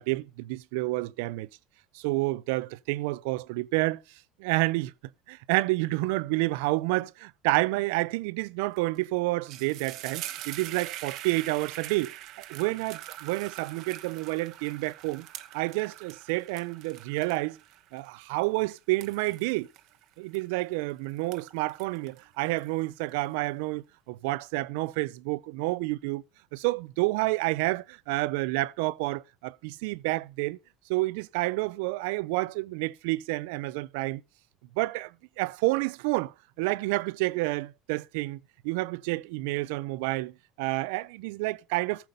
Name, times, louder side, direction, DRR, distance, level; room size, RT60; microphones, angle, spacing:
voice 1, 0.0-1.5 1.9-4.0 4.4-4.9 5.3-15.3 15.5-17.6 17.9-19.7 20.2-26.2 26.5-30.6 30.9-34.2 34.8-38.4 38.6-42.1, right 21 dB, 85° right, 0.5 m, -29 dB
sound 1, 8.8-9.0 9.3-20.8 21.2-23.1, right 14 dB, 55° right, 0.9 m, -43 dB
14.5 x 5.7 x 5.2 m
cardioid pair, 150°, 0 cm